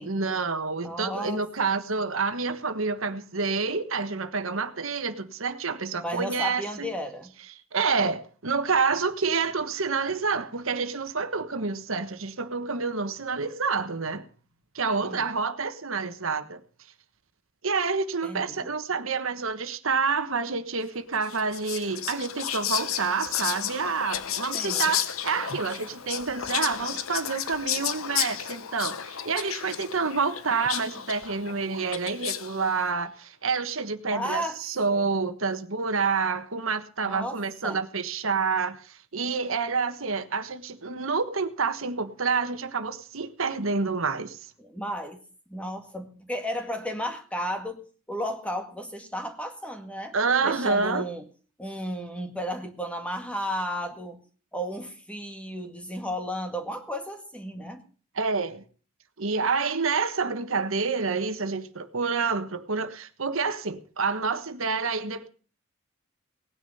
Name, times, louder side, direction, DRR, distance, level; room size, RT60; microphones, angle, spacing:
voice 1, 0.0-6.9 7.7-14.2 14.7-16.6 17.6-44.4 50.1-51.1 58.2-58.6 59.2-65.3, right 4 dB, 75° right, 1.4 m, -28 dB
voice 2, 0.8-1.5 6.0-7.3 15.0-15.2 18.2-18.7 24.5-24.9 34.1-34.6 34.9-35.1 37.0-37.8 44.6-45.2 45.5-50.2 50.4-51.3 51.6-54.2 54.5-57.8, equal, 5° left, 1.9 m, -34 dB
Whispering, 21.2-32.6, left 10 dB, 80° left, 1.0 m, -32 dB
18.5 x 10.0 x 5.6 m
head